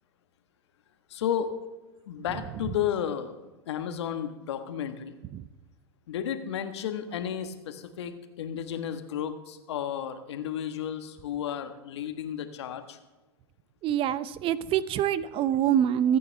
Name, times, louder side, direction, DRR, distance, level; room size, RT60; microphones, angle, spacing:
voice 1, 1.1-1.5 2.1-3.3 3.7-5.1 6.1-13.0, left 9 dB, 70° left, 8 dB, 1.5 m, -33 dB
voice 2, 13.8-16.2, right 10 dB, 40° right, 16 dB, 0.7 m, -25 dB
24.5 x 9.5 x 3.5 m, 1.1 s
hypercardioid pair, 95°, 15 cm